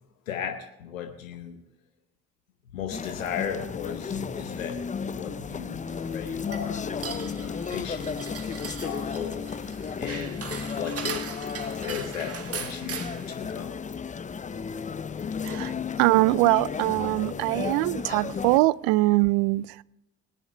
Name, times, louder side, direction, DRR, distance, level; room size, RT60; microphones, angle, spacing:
voice 1, 0.3-1.6 2.7-9.5 10.0-11.3 11.8-13.8 15.2-15.3 15.7-15.8 17.7-17.8, left 8 dB, 90° left, 0.9 m, -36 dB
sound 1, 2.9-18.6, left 6 dB, 20° left, 0.6 m, -34 dB
sound 2, 5.9-13.5, right 6 dB, 35° right, 1.7 m, -39 dB
voice 2, 15.4-19.8, right 20 dB, 65° right, 0.5 m, -23 dB
20.0 x 10.5 x 3.4 m
hypercardioid pair, 55°, 38 cm